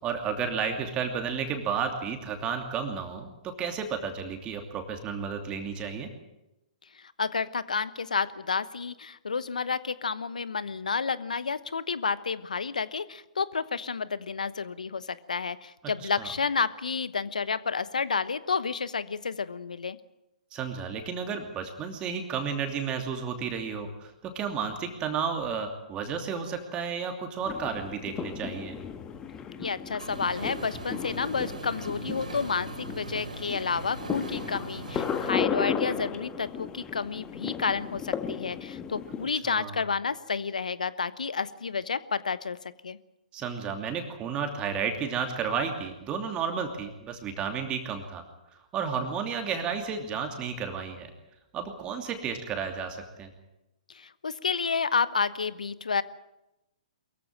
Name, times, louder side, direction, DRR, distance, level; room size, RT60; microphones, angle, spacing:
voice 1, 0.0-6.1 16.2-16.3 20.5-28.8 39.4-39.8 43.3-48.2 48.7-51.1 51.5-53.3, right 6 dB, 25° right, 5 dB, 2.8 m, -32 dB
voice 2, 7.2-20.0 29.6-42.6 42.8-43.0 53.9-56.0, left 5 dB, 80° left, 16 dB, 1.1 m, -30 dB
sound 1, 27.4-39.3, left 7 dB, 20° left, 1.5 m, -35 dB
sound 2, 30.0-35.3, right 3 dB, 80° right, 4.6 m, -41 dB
23.0 x 15.0 x 9.0 m, 0.94 s
figure-of-eight pair, 125°, 4 cm